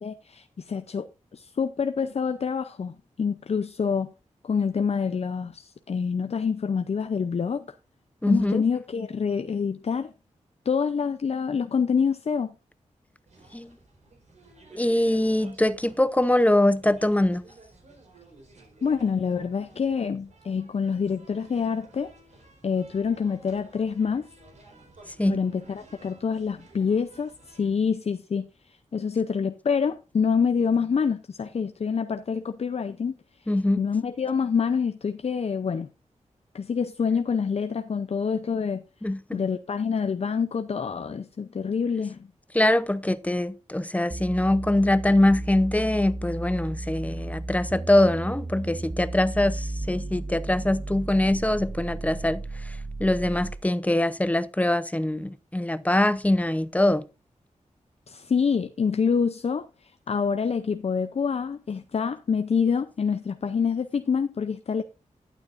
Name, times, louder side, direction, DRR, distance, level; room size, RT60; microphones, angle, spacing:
voice 1, 0.0-1.1 1.3-4.1 4.4-7.7 8.3-10.1 10.7-12.5 18.8-22.1 22.6-24.3 25.3-28.5 28.9-33.2 33.8-35.9 36.5-38.8 39.3-42.2 58.1-59.7 60.1-64.8, left 6 dB, 55° left, 0.6 m, -26 dB
voice 2, 8.2-8.6 13.5-13.7 14.7-17.4 25.2-25.4 33.5-33.8 39.0-39.4 42.5-57.0, left 1 dB, 10° left, 0.8 m, -23 dB
sound 1, 13.3-27.8, right 2 dB, 65° right, 4.2 m, -53 dB
sound 2, 44.1-53.7, right 2 dB, 20° right, 0.5 m, -34 dB
11.5 x 9.3 x 2.6 m
wide cardioid pair, 75°, 13 cm